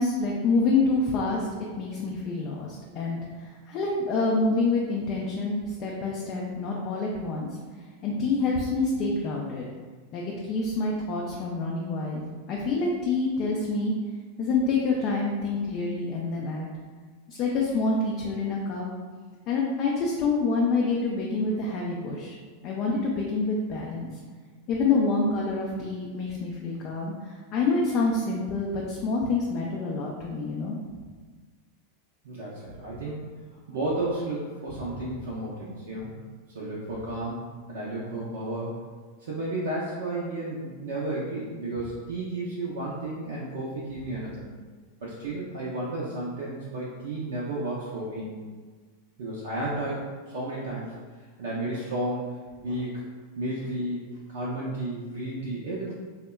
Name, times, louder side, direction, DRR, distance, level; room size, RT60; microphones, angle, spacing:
voice 1, 0.0-1.5 1.7-7.5 8.0-9.6 10.1-12.2 12.5-13.9 14.4-16.7 17.3-18.9 19.5-22.3 22.6-24.1 24.7-30.8, left 3 dB, 40° left, -2 dB, 0.3 m, -27 dB
voice 2, 32.2-33.2 33.7-36.2 36.5-37.4 37.7-38.7 39.2-44.4 45.0-48.3 49.2-50.0 50.3-50.9 51.4-52.3 52.6-53.0 53.4-55.9, right 2 dB, 65° right, -6 dB, 0.4 m, -32 dB
3.4 x 2.1 x 2.2 m, 1.5 s
figure-of-eight pair, 90°, 0 cm